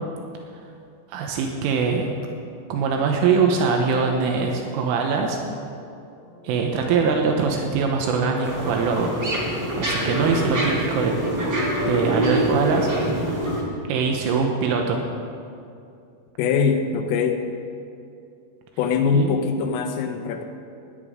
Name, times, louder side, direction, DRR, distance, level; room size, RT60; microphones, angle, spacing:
voice 1, 1.1-2.1 2.7-5.4 6.4-9.1 9.8-11.1 11.9-13.4 13.9-15.0 19.1-19.3, right 5 dB, 80° right, 2 dB, 3.4 m, -22 dB
sound 1, 5.6-12.4, left 3 dB, 70° left, 6.2 m, -39 dB
sound 2, 8.4-13.6, right 1 dB, 25° right, 1.6 m, -25 dB
voice 2, 16.4-17.4 18.8-20.4, left 5 dB, 85° left, 4 dB, 3.6 m, -22 dB
17.0 x 10.5 x 5.1 m, 2.5 s
omnidirectional pair, 5.7 m